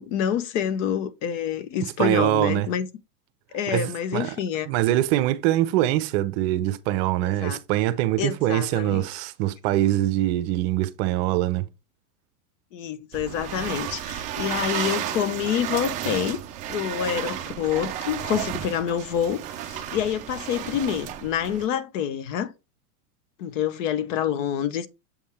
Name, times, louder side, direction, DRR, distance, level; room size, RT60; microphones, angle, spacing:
voice 1, 0.0-2.9 3.5-4.7 7.2-7.6 8.2-9.1 12.7-22.5 23.4-24.9, left 9 dB, 55° left, 0.9 m, -27 dB
voice 2, 2.0-2.7 3.7-4.4 4.7-11.6, right 14 dB, 45° right, 0.7 m, -23 dB
sound 1, 13.1-21.7, right 11 dB, 20° right, 0.3 m, -32 dB
7.2 x 3.6 x 4.3 m
hypercardioid pair, 130°, 46 cm